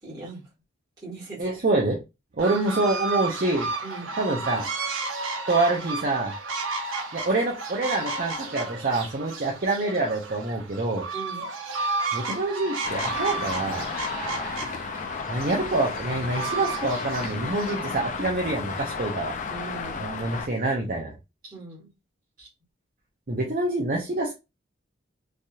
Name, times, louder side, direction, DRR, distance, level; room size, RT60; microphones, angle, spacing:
voice 1, 0.0-0.5 1.0-1.5 3.8-4.1 11.1-11.5 19.5-20.0 21.5-21.9, right 3 dB, 20° right, -8 dB, 1.5 m, -39 dB
voice 2, 1.4-2.0 2.4-3.7 4.2-4.7 5.5-6.3 7.1-11.0 12.1-13.9 15.3-19.3 20.0-21.1 23.3-24.3, right 2 dB, 45° right, 0 dB, 0.6 m, -26 dB
sound 1, 2.4-18.0, right 3 dB, 80° right, 0.9 m, -33 dB
Traffic noise roadway noise, 12.8-20.5, left 5 dB, 40° left, 0.4 m, -33 dB
3.3 x 2.7 x 2.3 m, 0.25 s
head